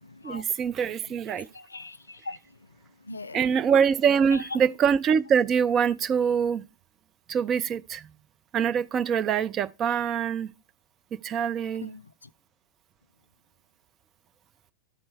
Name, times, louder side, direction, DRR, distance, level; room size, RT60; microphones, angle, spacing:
voice 1, 0.2-1.5 3.3-6.6 7.3-8.1 8.5-10.5 11.1-11.9, right 7 dB, 30° right, 0.4 m, -24 dB
voice 2, 1.5-2.4 3.0-3.4 4.3-4.4 11.8-12.3, left 2 dB, 80° left, 0.3 m, -40 dB
12.5 x 4.4 x 3.2 m
figure-of-eight pair, 90°, 0 cm